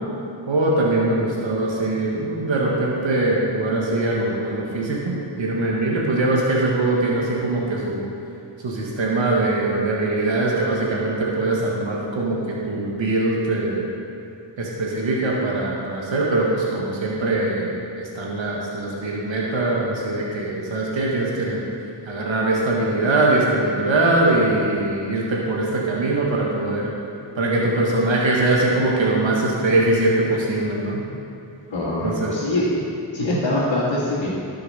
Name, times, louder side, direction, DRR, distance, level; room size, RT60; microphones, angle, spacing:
voice 1, 0.5-8.0 8.6-13.9 14.6-21.6 22.1-26.9 27.3-31.0 32.0-32.3 33.2-33.4, right 2 dB, 85° right, -4 dB, 1.7 m, -22 dB
voice 2, 31.7-32.7 33.1-34.3, left 2 dB, 75° left, -11 dB, 2.3 m, -23 dB
11.5 x 6.9 x 5.6 m, 2.6 s
cardioid pair, 60°, 45 cm